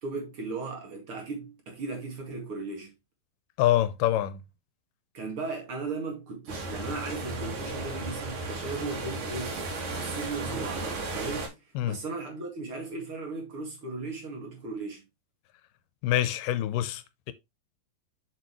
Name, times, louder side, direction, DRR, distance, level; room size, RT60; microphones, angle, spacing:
voice 1, 0.0-2.9 5.1-9.7 10.0-11.6 11.8-15.0, right 3 dB, 45° right, 2.6 m, -36 dB
voice 2, 3.6-4.4 11.8-12.0 16.0-17.3, left 12 dB, 90° left, 2.3 m, -26 dB
sound 1, 6.5-11.5, right 2 dB, 90° right, 3.7 m, -35 dB
7.0 x 6.4 x 3.1 m
omnidirectional pair, 3.8 m